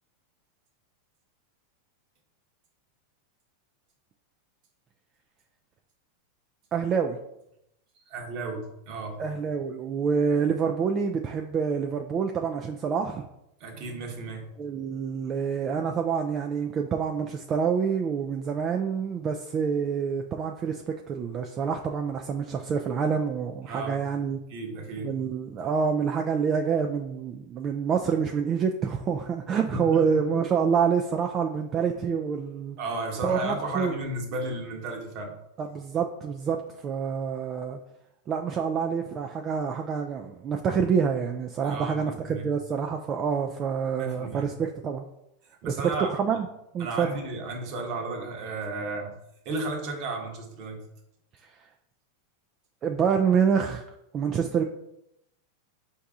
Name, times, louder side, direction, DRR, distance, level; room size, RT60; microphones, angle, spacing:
voice 1, 6.7-7.2 9.2-13.3 14.6-24.4 25.0-32.8 33.2-33.9 35.6-36.6 36.8-37.8 38.3-45.0 45.6-46.5 46.7-47.1 52.8-53.8 54.1-54.6, right 6 dB, 30° right, 3 dB, 0.3 m, -27 dB
voice 2, 8.1-9.2 13.6-14.5 23.7-24.1 24.5-25.1 29.7-30.1 32.8-35.3 41.7-42.5 44.0-44.5 45.6-46.1 46.8-49.1 49.4-50.8, right 2 dB, 50° right, 2 dB, 1.1 m, -33 dB
4.6 x 2.7 x 3.6 m, 0.81 s
hypercardioid pair, 125°, 0 cm